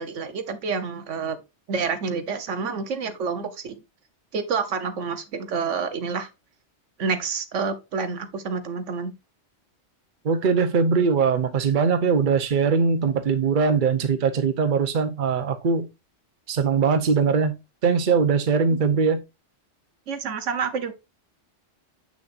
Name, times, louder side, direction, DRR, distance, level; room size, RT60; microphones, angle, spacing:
voice 1, 0.0-1.4 1.7-3.8 4.3-6.3 7.0-9.1 18.7-18.8 20.1-20.9, right 5 dB, 90° right, 1.3 m, -28 dB
voice 2, 10.2-15.9 16.5-19.2, right 5 dB, 45° right, 1.0 m, -21 dB
7.4 x 6.1 x 2.5 m
omnidirectional pair, 1.2 m